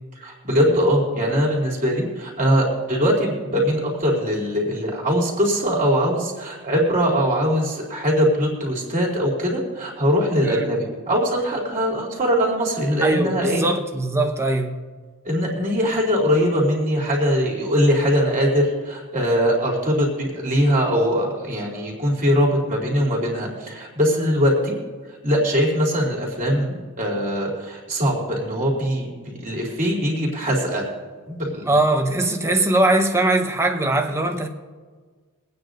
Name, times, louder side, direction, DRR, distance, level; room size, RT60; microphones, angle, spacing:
voice 1, 0.2-13.7 15.2-24.7 25.2-30.9 31.3-31.7, equal, 35° right, 3.1 m, -21 dB
voice 2, 13.0-14.7 31.6-34.5, right 2 dB, 15° right, 1.0 m, -21 dB
24.5 x 9.4 x 2.6 m
head